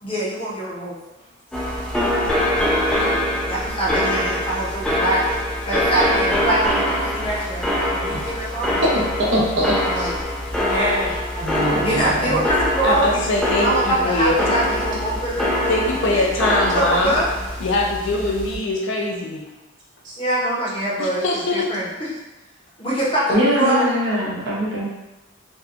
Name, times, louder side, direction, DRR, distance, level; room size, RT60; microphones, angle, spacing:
voice 1, 0.0-1.0 3.0-3.2 3.5-5.3 5.6-8.8 9.8-10.1 10.6-13.2 13.6-15.7 16.7-17.5 20.2-22.1 22.8-23.8, right 1 dB, 25° left, -7 dB, 0.7 m, -24 dB
sound 1, 1.5-18.6, left 1 dB, 5° left, 0.3 m, -24 dB
voice 2, 9.3-10.1 11.4-12.4 20.0-20.1 23.3-24.8, equal, 60° right, -6 dB, 0.8 m, -22 dB
voice 3, 12.8-14.4 15.7-17.1 17.6-19.4 20.8-21.7, left 2 dB, 65° left, -1 dB, 0.5 m, -22 dB
2.6 x 2.2 x 2.4 m, 1.0 s
head